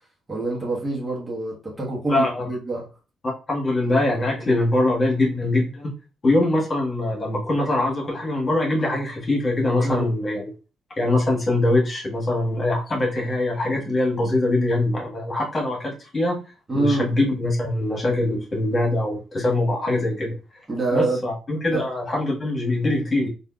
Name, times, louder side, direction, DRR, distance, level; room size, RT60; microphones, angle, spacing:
voice 1, 0.3-2.9 9.8-10.1 16.7-17.1 20.7-21.2 21.7-21.9, right 2 dB, 30° right, 1.3 m, -25 dB
voice 2, 2.1-2.5 3.5-5.9 6.2-10.4 11.0-16.4 16.7-20.4 20.9-23.3, left 2 dB, 35° left, 1.4 m, -23 dB
3.4 x 2.6 x 2.3 m
hypercardioid pair, 45°, 0 cm